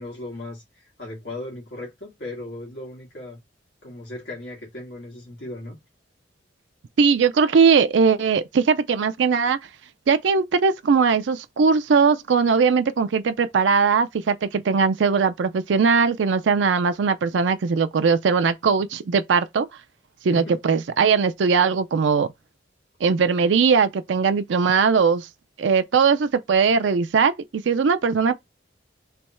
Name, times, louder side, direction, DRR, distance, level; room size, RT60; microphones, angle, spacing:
voice 1, 0.0-3.4 3.8-5.8 20.3-20.6, left 2 dB, 65° left, 1.6 m, -37 dB
voice 2, 7.0-9.6 10.1-19.7 20.2-22.3 23.0-25.3 25.6-28.3, right 5 dB, 75° right, 0.4 m, -20 dB
3.4 x 3.0 x 4.2 m
head